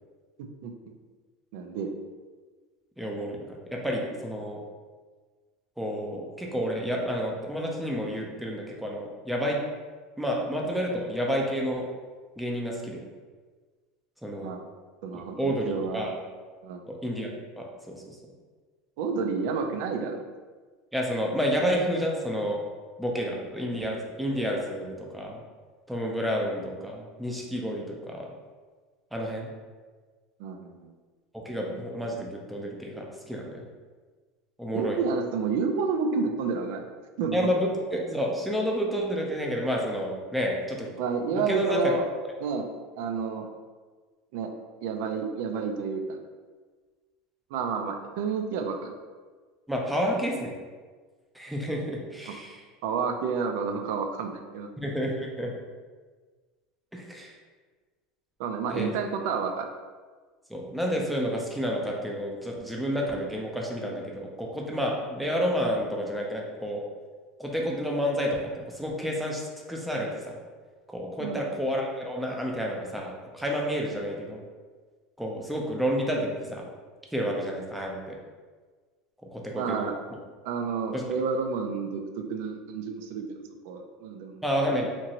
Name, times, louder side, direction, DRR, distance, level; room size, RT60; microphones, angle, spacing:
voice 1, 0.4-0.7 1.5-1.9 14.4-14.6 15.0-16.1 16.6-16.8 19.0-20.2 30.4-30.9 34.7-36.9 37.2-37.5 41.0-42.0 42.4-42.7 43.0-43.5 44.3-44.5 44.8-46.2 47.5-48.9 52.8-54.7 58.4-59.7 71.2-71.6 79.5-79.9 80.4-84.4, right 5 dB, 70° right, 5 dB, 0.3 m, -30 dB
voice 2, 3.0-3.4 3.7-4.6 5.8-9.6 10.2-11.8 12.4-13.0 14.2-14.5 15.4-16.2 16.9-17.3 17.6-17.7 17.9-18.2 20.9-22.6 23.0-25.4 25.9-28.3 29.1-29.5 31.3-33.6 34.6-35.0 37.3-40.9 41.3-41.8 49.7-50.5 51.3-52.6 54.8-55.5 56.9-57.4 58.7-58.9 60.5-66.8 67.4-69.4 69.7-70.4 70.9-74.4 75.2-76.7 77.1-78.2 79.3-79.9 80.9-81.0 84.4-84.9, equal, ahead, -1 dB, 0.5 m, -30 dB
2.9 x 2.5 x 2.8 m, 1.4 s
supercardioid pair, 140°, 0 cm